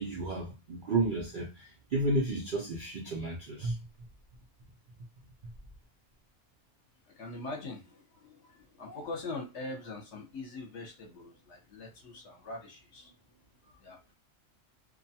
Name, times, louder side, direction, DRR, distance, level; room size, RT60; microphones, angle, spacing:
voice 1, 0.0-3.8, right 2 dB, 75° right, 0.4 m, -32 dB
voice 2, 7.0-14.1, left 2 dB, 55° left, 1.0 m, -43 dB
2.5 x 2.2 x 2.7 m
omnidirectional pair, 1.5 m